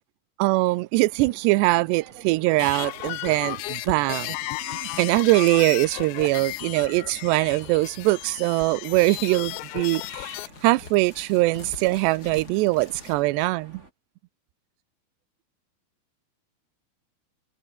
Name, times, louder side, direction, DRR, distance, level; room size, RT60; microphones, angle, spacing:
voice 1, 0.4-4.4 4.6-13.8, right 21 dB, 90° right, 2.4 m, -22 dB
sound 1, 0.9-13.9, right 2 dB, 15° right, 5.8 m, -52 dB
sound 2, 2.5-10.5, left 20 dB, 85° left, 2.7 m, -34 dB
sound 3, 4.8-13.2, left 5 dB, 40° left, 1.3 m, -47 dB
omnidirectional pair, 5.7 m